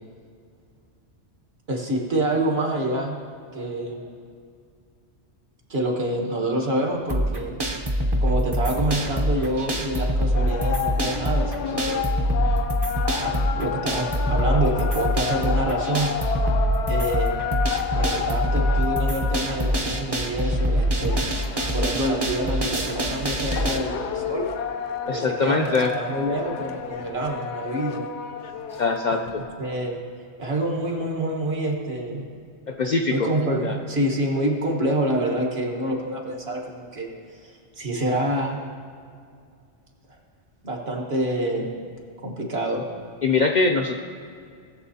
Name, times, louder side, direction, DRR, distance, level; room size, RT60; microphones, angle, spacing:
voice 1, 1.7-3.2 3.5-4.0 5.7-7.6 8.2-12.1 13.2-16.1 16.9-17.4 17.9-21.2 21.7-24.5 25.1-28.0 29.1-29.2 29.6-30.0 30.4-32.3 33.1-37.1 37.4-38.6 40.6-41.7 42.2-42.9, right 1 dB, 60° right, 0 dB, 1.6 m, -27 dB
sound 1, 7.1-23.8, equal, 25° right, 0.7 m, -24 dB
sound 2, 10.4-29.5, left 7 dB, 75° left, 0.9 m, -31 dB
voice 2, 25.1-25.9 28.8-29.4 32.7-33.3 33.6-33.8 43.2-44.0, left 4 dB, 55° left, 3 dB, 0.5 m, -22 dB
18.5 x 7.3 x 2.8 m, 2.3 s
omnidirectional pair, 1.2 m